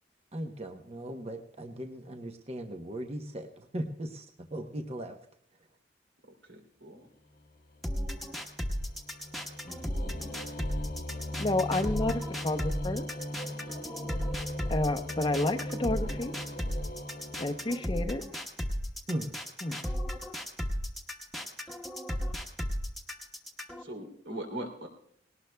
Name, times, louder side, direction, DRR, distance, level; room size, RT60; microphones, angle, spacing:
voice 1, 0.3-4.3 4.5-5.2 19.1-19.3, right 1 dB, 35° right, 4 dB, 0.9 m, -37 dB
voice 2, 6.4-7.1 23.8-24.9, right 1 dB, 85° right, 3 dB, 3.0 m, -40 dB
sound 1, 7.4-18.3, left 1 dB, 55° left, 1.0 m, -39 dB
sound 2, 7.8-23.8, equal, ahead, 1.1 m, -35 dB
voice 3, 11.4-13.1 14.7-16.4 17.4-18.2 19.6-19.8, left 2 dB, 25° left, 6 dB, 0.7 m, -30 dB
19.5 x 18.5 x 2.3 m, 0.66 s
head